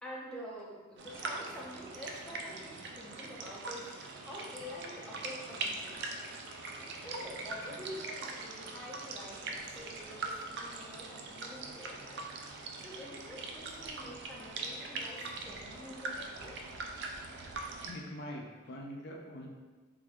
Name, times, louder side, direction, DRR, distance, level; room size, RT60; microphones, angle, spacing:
voice 1, 0.0-16.6, equal, 5° left, -4 dB, 0.5 m, -47 dB
sound 1, 1.0-17.9, right 3 dB, 55° right, 0.4 m, -42 dB
Wind chime, 4.2-10.0 10.4-10.5, left 7 dB, 85° right, 1.4 m, -62 dB
voice 2, 17.8-19.5, equal, 55° left, 0 dB, 0.5 m, -43 dB
3.3 x 2.4 x 3.5 m, 1.3 s
head